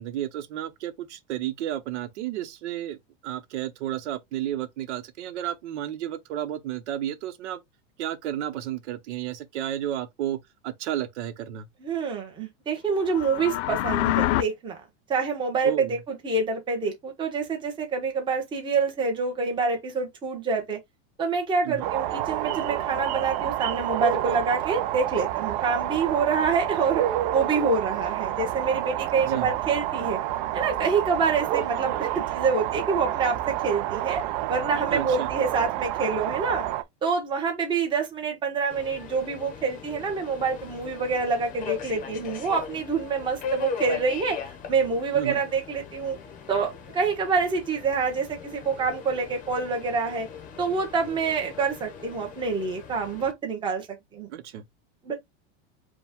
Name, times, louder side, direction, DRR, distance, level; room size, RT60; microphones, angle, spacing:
voice 1, 0.0-3.0 3.2-7.6 8.0-11.7 15.6-15.9 21.6-21.9 29.2-29.5 34.9-35.3 45.1-45.4 54.3-54.6, right 12 dB, 75° right, 0.9 m, -32 dB
voice 2, 11.8-14.8 15.1-20.8 21.2-27.0 27.3-30.2 30.5-34.2 34.5-36.6 37.0-44.4 44.7-46.2 46.5-50.3 50.6-53.9 54.1-54.3 55.0-55.1, right 4 dB, 15° right, 1.0 m, -26 dB
sound 1, 13.0-14.4, left 15 dB, 80° left, 0.5 m, -25 dB
sound 2, 21.8-36.8, right 13 dB, 45° right, 0.5 m, -29 dB
Subway metro underground, 38.7-53.3, left 6 dB, 25° left, 0.7 m, -39 dB
5.0 x 2.3 x 3.6 m
supercardioid pair, 170°, 34 cm